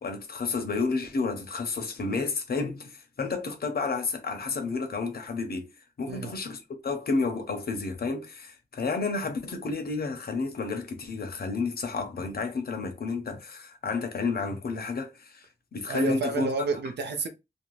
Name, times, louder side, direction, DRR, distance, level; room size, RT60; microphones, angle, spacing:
voice 1, 0.0-5.7 6.0-16.5, left 4 dB, 65° left, 0.7 m, -31 dB
voice 2, 15.9-17.3, right 3 dB, 80° right, 0.6 m, -29 dB
2.6 x 2.2 x 3.0 m
wide cardioid pair, 120°, 17 cm